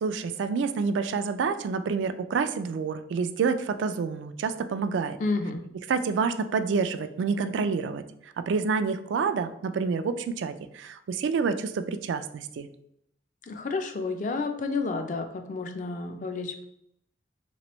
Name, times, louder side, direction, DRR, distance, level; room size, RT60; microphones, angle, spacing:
voice 1, 0.0-5.2 5.9-12.7, right 5 dB, 85° right, 10 dB, 0.3 m, -28 dB
voice 2, 5.2-5.6 13.5-16.6, left 3 dB, 45° left, 6 dB, 0.4 m, -30 dB
3.3 x 3.1 x 3.0 m, 0.74 s
head